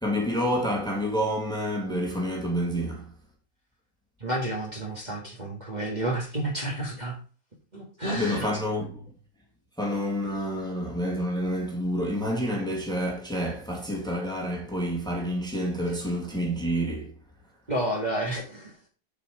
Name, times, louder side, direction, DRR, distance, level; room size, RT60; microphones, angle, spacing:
voice 1, 0.0-3.1 8.0-9.0 9.8-17.1, equal, ahead, 2.1 m, -28 dB
voice 2, 4.2-7.1 7.7-8.5 17.7-18.7, right 1 dB, 25° right, 2.0 m, -30 dB
7.7 x 5.1 x 5.0 m
omnidirectional pair, 1.9 m